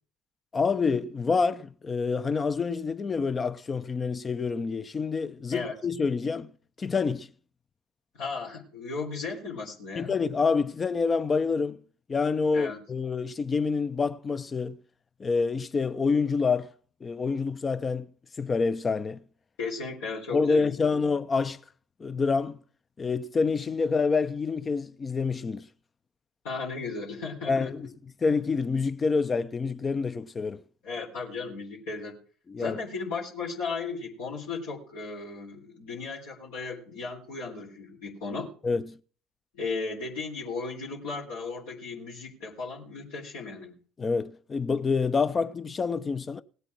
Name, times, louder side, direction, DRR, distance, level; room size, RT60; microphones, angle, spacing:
voice 1, 0.5-6.5 6.8-7.3 10.0-11.8 12.1-14.8 15.2-16.7 17.0-18.1 18.4-19.2 20.3-21.6 22.0-22.6 23.0-25.7 27.5-27.9 28.2-30.6 32.5-32.8 38.6-39.0 44.0-46.4, left 4 dB, 30° left, 0.9 m, -27 dB
voice 2, 8.1-10.2 12.5-12.8 19.6-21.1 26.4-27.9 30.8-32.2 32.6-38.5 39.5-43.8, left 4 dB, 70° left, 3.7 m, -36 dB
18.5 x 8.2 x 4.6 m
figure-of-eight pair, 60°, 0 cm